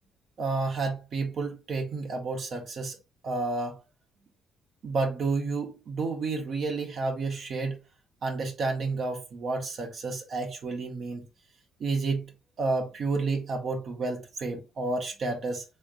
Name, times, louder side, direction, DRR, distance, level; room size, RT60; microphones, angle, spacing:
voice 1, 0.4-3.0 3.2-3.8 4.8-7.8 8.2-11.2 11.8-12.2 12.6-15.6, right 3 dB, 55° right, 1.1 m, -30 dB
3.5 x 3.3 x 2.5 m
supercardioid pair, 65°, 0 cm